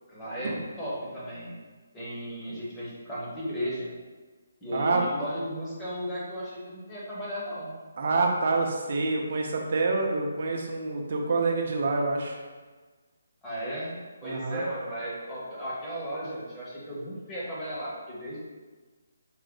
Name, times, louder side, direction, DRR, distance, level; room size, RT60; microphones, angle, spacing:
voice 1, 0.1-1.6 1.9-3.9 4.6-7.7 13.4-18.5, equal, 10° left, -9 dB, 0.9 m, -35 dB
voice 2, 4.7-5.0 8.0-12.4 14.2-14.6, right 3 dB, 45° right, 1 dB, 0.6 m, -27 dB
4.9 x 2.1 x 3.7 m, 1.3 s
hypercardioid pair, 170°, 0 cm